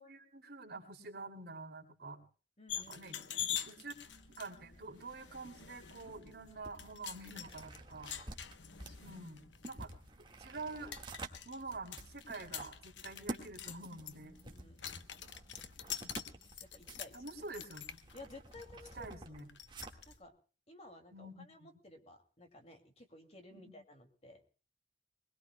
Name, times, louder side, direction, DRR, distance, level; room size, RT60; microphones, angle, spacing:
voice 1, 0.0-2.2 2.7-3.9 4.3-8.1 9.0-9.9 10.4-11.0 11.4-14.4 17.1-18.0 18.9-19.5 21.1-21.7 23.5-23.7, right 3 dB, 55° right, 3 dB, 2.8 m, -47 dB
voice 2, 2.6-3.5 8.7-9.0 14.4-15.2 16.6-17.2 18.1-19.0 19.3-19.5 20.1-20.3 20.7-24.4, left 2 dB, 35° left, 5 dB, 2.5 m, -55 dB
sound 1, 2.7-20.1, left 10 dB, 75° left, 1.0 m, -46 dB
sound 2, 3.9-20.2, right 2 dB, 25° right, 1.8 m, -51 dB
22.0 x 21.0 x 2.3 m, 0.37 s
head